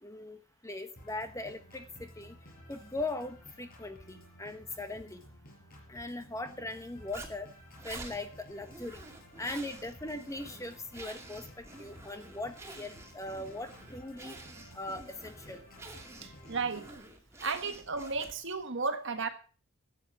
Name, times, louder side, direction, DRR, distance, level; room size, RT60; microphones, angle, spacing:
voice 1, 0.0-2.3 2.7-5.2 5.9-7.5 7.8-9.0 9.4-14.4 14.7-15.6, left 2 dB, 15° left, 9 dB, 1.1 m, -40 dB
Organ, 1.0-17.0, equal, 45° left, 5.0 m, -54 dB
Zipper (clothing), 7.1-18.6, right 2 dB, 15° right, 2.3 m, -49 dB
voice 2, 16.2-17.0 17.4-19.3, right 4 dB, 60° right, 8 dB, 1.7 m, -34 dB
13.0 x 8.8 x 6.1 m, 0.37 s
head